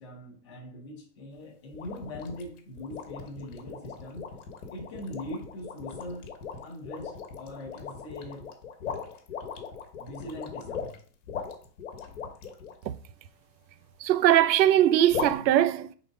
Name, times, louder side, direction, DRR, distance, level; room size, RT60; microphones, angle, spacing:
voice 1, 0.0-4.3 4.7-6.3 6.6-8.5 10.0-10.9, left 1 dB, 20° left, 0.7 m, -41 dB
sound 1, 1.7-12.7 15.1-15.4, left 6 dB, 50° left, 1.3 m, -38 dB
voice 2, 14.0-15.9, right 12 dB, 90° right, 0.7 m, -21 dB
5.0 x 3.9 x 4.7 m
supercardioid pair, 180°, 50 cm